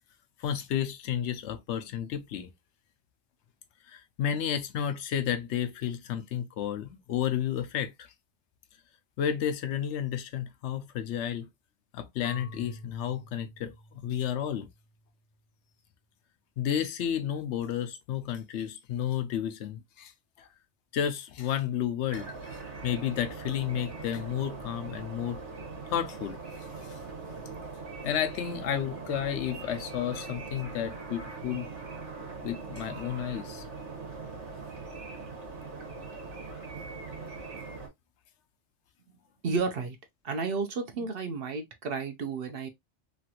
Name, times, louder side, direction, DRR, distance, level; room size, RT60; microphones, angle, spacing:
voice 1, 0.4-2.5 3.9-8.1 9.2-11.5 11.9-14.7 16.6-20.1 20.4-20.5 20.9-25.4 25.9-26.4 28.0-31.7 32.4-33.6, left 9 dB, 75° left, 0.9 m, -32 dB
Marimba xylophone / Wood, 12.2-15.1, left 1 dB, 45° left, 0.6 m, -49 dB
sound 1, 22.1-37.9, right 4 dB, 75° right, 1.4 m, -41 dB
voice 2, 39.4-40.0 40.2-42.7, right 4 dB, 60° right, 0.8 m, -32 dB
3.0 x 2.4 x 2.8 m
omnidirectional pair, 1.2 m